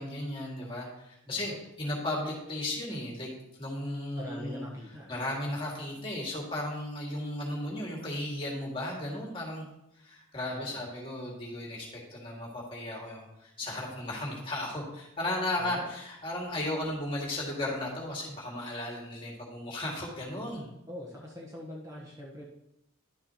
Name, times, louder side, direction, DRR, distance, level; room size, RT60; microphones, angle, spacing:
voice 1, 0.0-3.3 3.6-4.6 5.1-9.7 10.0-20.7, left 1 dB, 25° left, -2 dB, 1.9 m, -35 dB
voice 2, 1.3-1.6 4.2-5.5 10.5-10.8 15.6-15.9 20.9-22.4, left 1 dB, 15° right, -3 dB, 1.0 m, -43 dB
11.0 x 6.5 x 2.9 m, 0.83 s
head